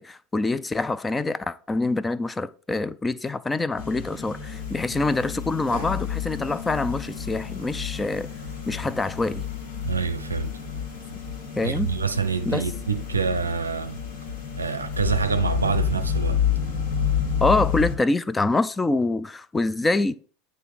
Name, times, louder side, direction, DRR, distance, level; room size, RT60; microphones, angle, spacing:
voice 1, 0.0-8.3 8.7-9.4 11.6-11.9 12.5-12.6 17.4-20.2, left 3 dB, 15° left, 0.4 m, -25 dB
sound 1, 3.8-18.0, left 7 dB, 60° left, 1.8 m, -29 dB
voice 2, 9.8-10.5 11.6-14.0 14.6-16.4, right 5 dB, 80° right, 0.5 m, -26 dB
9.2 x 3.1 x 4.5 m
figure-of-eight pair, 75°, 0 cm